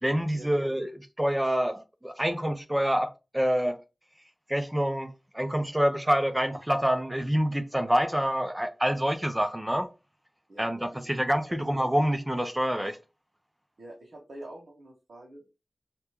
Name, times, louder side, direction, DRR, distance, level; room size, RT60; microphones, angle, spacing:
voice 1, 0.0-0.9 1.2-3.8 4.5-9.9 10.6-13.0, equal, 15° right, 0.8 m, -27 dB
voice 2, 10.5-11.1 11.5-11.6 13.8-15.6, right 1 dB, 80° right, 1.3 m, -46 dB
3.1 x 3.0 x 3.5 m
cardioid pair, 45°, 0 cm